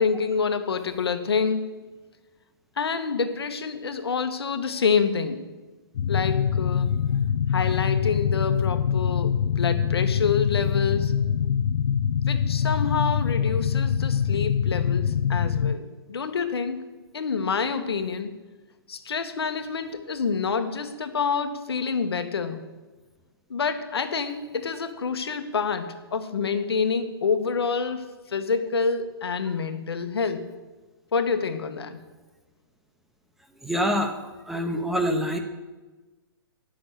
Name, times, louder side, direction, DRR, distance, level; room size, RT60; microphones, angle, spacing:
voice 1, 0.0-1.9 2.8-5.4 6.1-7.0 7.5-11.2 12.3-16.9 17.1-18.3 18.9-22.7 23.5-30.5 31.1-32.0, left 5 dB, 85° left, 8 dB, 1.2 m, -27 dB
sound 1, 5.9-15.7, left 7 dB, 65° left, 0.4 m, -24 dB
voice 2, 33.6-34.2 34.5-35.4, equal, ahead, 5 dB, 0.7 m, -25 dB
9.2 x 6.3 x 8.1 m, 1.2 s
hypercardioid pair, 150°, 13 cm